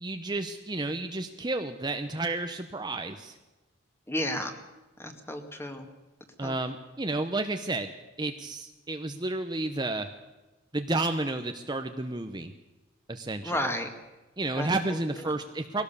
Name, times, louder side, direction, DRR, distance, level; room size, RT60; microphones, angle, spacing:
voice 1, 0.0-3.4 6.4-7.9 8.2-10.1 10.7-12.5 13.1-13.6 14.4-15.8, right 2 dB, 20° right, 6 dB, 0.9 m, -31 dB
voice 2, 4.1-4.5 5.0-5.9 6.4-6.5 13.4-13.9 14.6-15.0 15.3-15.4, left 1 dB, 15° left, 6 dB, 2.0 m, -32 dB
21.5 x 17.0 x 7.0 m, 1.1 s
head